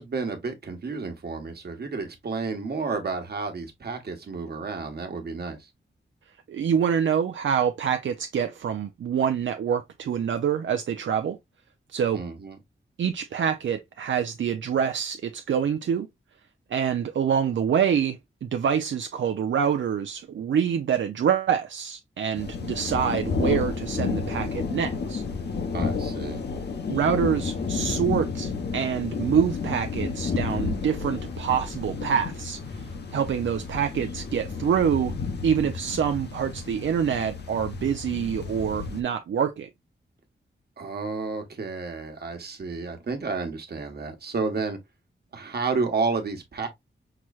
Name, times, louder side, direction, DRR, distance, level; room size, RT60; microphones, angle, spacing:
voice 1, 0.0-5.7 12.1-12.6 25.7-26.4 40.8-44.8 45.3-46.7, right 4 dB, 55° right, 1.2 m, -31 dB
voice 2, 6.5-11.4 11.9-12.2 13.0-16.1 16.7-25.2 26.9-32.8 33.1-35.1 35.4-39.7, right 8 dB, 75° right, 0.5 m, -26 dB
sound 1, 22.3-39.0, left 4 dB, 60° left, 1.0 m, -31 dB
5.9 x 3.1 x 2.3 m
wide cardioid pair, 155°, 20 cm